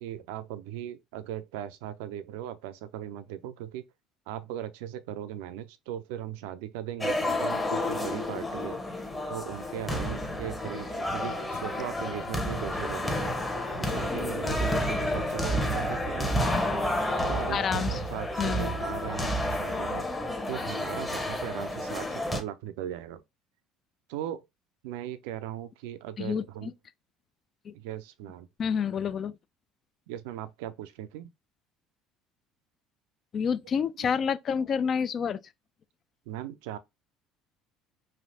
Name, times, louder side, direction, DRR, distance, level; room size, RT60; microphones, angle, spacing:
voice 1, 0.0-3.8 4.3-8.8 9.3-13.3 13.8-16.5 17.3-20.1 20.5-23.2 24.1-24.4 24.8-26.7 27.7-28.5 30.1-31.3 36.3-36.8, right 11 dB, 70° right, 0.4 m, -38 dB
sound 1, 7.0-22.4, left 1 dB, 15° left, 0.9 m, -30 dB
voice 2, 17.5-18.0 18.4-18.7 26.2-26.7 27.6-27.7 28.6-29.3 33.3-35.4, left 7 dB, 45° left, 0.3 m, -28 dB
3.2 x 2.5 x 2.7 m
hypercardioid pair, 60°, 0 cm